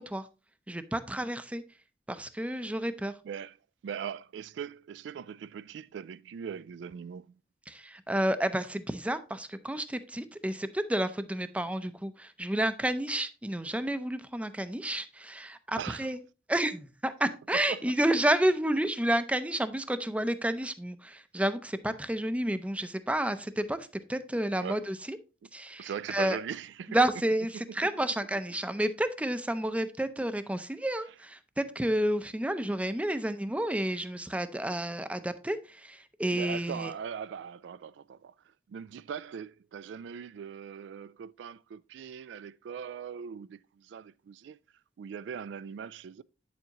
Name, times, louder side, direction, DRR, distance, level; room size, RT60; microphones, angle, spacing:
voice 1, 0.7-1.6 2.1-3.1 7.7-16.2 16.5-23.8 24.1-25.2 25.5-26.4 26.9-36.9, right 1 dB, 5° right, 0.5 m, -30 dB
voice 2, 3.2-3.6 3.8-7.4 15.8-16.1 17.5-17.8 24.6-24.8 25.8-27.0 27.5-27.9 36.3-38.3 38.7-44.6 45.0-46.2, right 7 dB, 75° right, 0.3 m, -40 dB
9.1 x 7.0 x 2.9 m
head